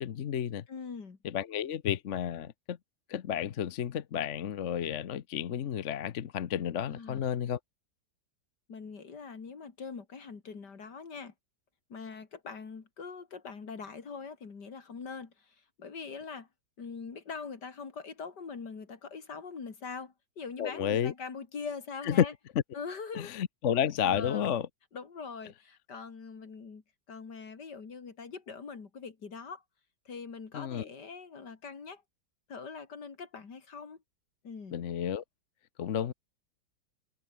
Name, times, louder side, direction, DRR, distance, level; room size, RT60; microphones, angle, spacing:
voice 1, 0.0-0.6 1.2-2.8 3.1-7.6 20.6-21.1 22.0-22.3 23.1-24.7 30.5-30.9 34.7-35.2 35.8-36.1, left 9 dB, 50° left, 1.0 m, -31 dB
voice 2, 0.7-1.2 6.9-7.2 8.7-11.3 11.9-16.5 16.8-22.3 22.7-23.3 24.0-24.5 24.9-26.8 27.1-29.6 30.0-32.0 32.5-34.0 34.4-34.7, left 5 dB, 70° left, 3.1 m, -43 dB
omnidirectional pair, 1.9 m